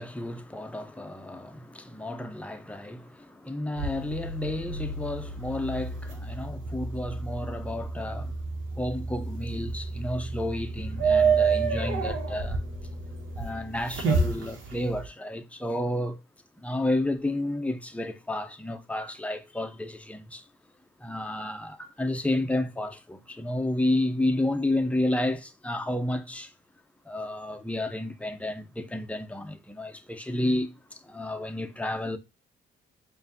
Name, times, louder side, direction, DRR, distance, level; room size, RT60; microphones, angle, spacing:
voice 1, 0.0-8.4 8.8-12.6 13.4-16.2 16.6-20.4 21.0-26.5 27.1-32.2, left 1 dB, 5° left, 0.6 m, -31 dB
sound 1, 3.8-15.1, right 4 dB, 75° right, 1.3 m, -29 dB
5.2 x 2.6 x 2.6 m
cardioid pair, 90°, 20 cm